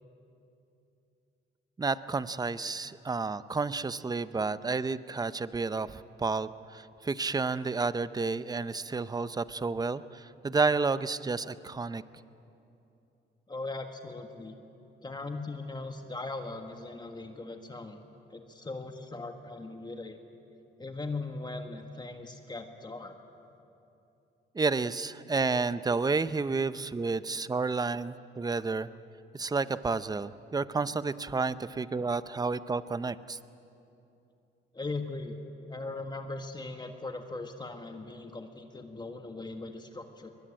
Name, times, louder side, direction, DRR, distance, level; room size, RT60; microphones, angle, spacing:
voice 1, 1.8-12.0 24.5-28.9 29.3-33.4, right 4 dB, 20° right, 14 dB, 0.7 m, -31 dB
voice 2, 13.5-14.5 15.0-18.0 18.3-20.2 20.8-23.1 34.7-35.4 35.7-40.3, left 3 dB, 20° left, 5 dB, 1.7 m, -39 dB
23.0 x 21.0 x 8.9 m, 2.8 s
cardioid pair, 90°, 20 cm